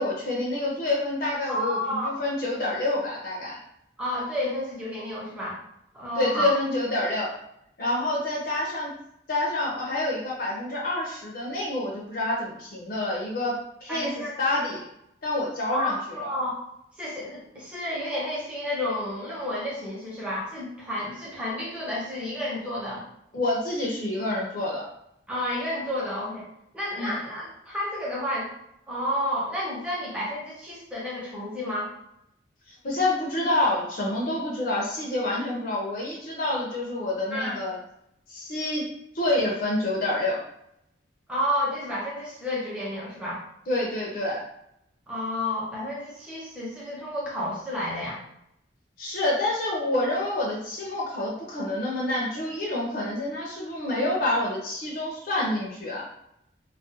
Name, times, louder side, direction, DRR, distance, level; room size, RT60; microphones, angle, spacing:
voice 1, 0.0-3.6 6.2-7.3 7.8-8.9 9.3-14.9 15.2-16.3 23.3-24.8 27.0-27.1 32.7-37.8 38.3-40.4 43.7-44.4 49.0-56.1, left 2 dB, 50° left, -3 dB, 0.5 m, -28 dB
voice 2, 1.5-2.2 4.0-5.6 5.9-6.5 13.9-14.3 15.7-16.6 17.0-23.0 25.3-26.5 26.7-28.5 28.9-31.9 37.3-37.6 41.3-43.4 45.1-48.2, left 1 dB, 5° right, -6 dB, 0.7 m, -31 dB
2.3 x 2.2 x 2.6 m, 0.78 s
head